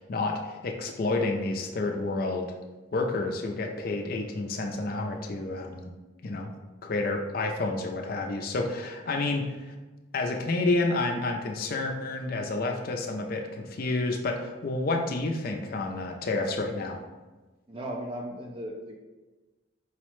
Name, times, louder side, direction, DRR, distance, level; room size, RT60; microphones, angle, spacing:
voice 1, 0.0-2.5 2.9-5.9 6.2-6.5 6.8-9.7 10.1-17.0, left 2 dB, 45° left, 3 dB, 0.4 m, -29 dB
voice 2, 17.7-19.0, right 1 dB, 25° right, 0 dB, 0.3 m, -36 dB
4.7 x 2.1 x 3.0 m, 1.2 s
head